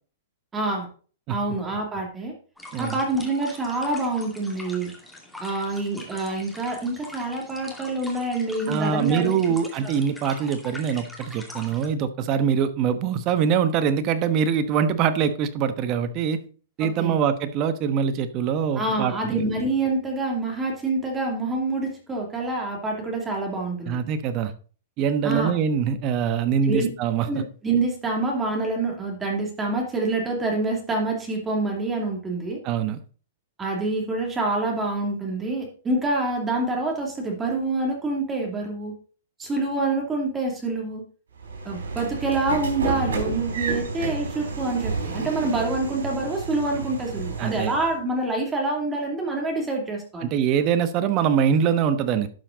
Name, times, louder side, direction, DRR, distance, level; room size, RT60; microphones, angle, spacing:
voice 1, 0.5-0.9 1.3-2.3 2.8-4.9 5.4-9.5 9.8-9.9 16.8-17.2 18.7-24.0 25.2-25.5 26.6-26.9 27.2-32.6 33.6-38.9 39.4-41.0 41.6-50.3, right 2 dB, 15° right, 0 dB, 2.7 m, -26 dB
sound 1, 2.6-11.9, left 1 dB, ahead, 2.4 m, -43 dB
voice 2, 8.7-16.4 16.8-19.5 23.9-24.5 25.0-27.3 32.6-33.0 47.4-47.7 50.2-52.3, right 7 dB, 35° right, 11 dB, 1.2 m, -23 dB
Train / Sliding door, 41.4-48.0, right 4 dB, 85° right, 4.1 m, -31 dB
11.5 x 5.8 x 4.0 m, 0.40 s
hypercardioid pair, 135°, 0 cm